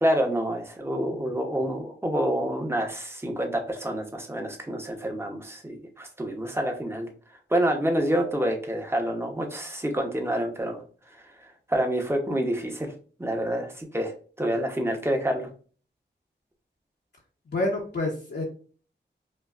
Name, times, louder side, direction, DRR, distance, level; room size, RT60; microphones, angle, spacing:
voice 1, 0.0-7.1 7.5-10.8 11.7-12.9 13.2-15.5, right 1 dB, 15° right, 3 dB, 0.9 m, -27 dB
voice 2, 17.5-18.4, left 2 dB, 65° left, -2 dB, 0.9 m, -28 dB
5.3 x 2.2 x 2.4 m, 0.40 s
wide cardioid pair, 85°, 19 cm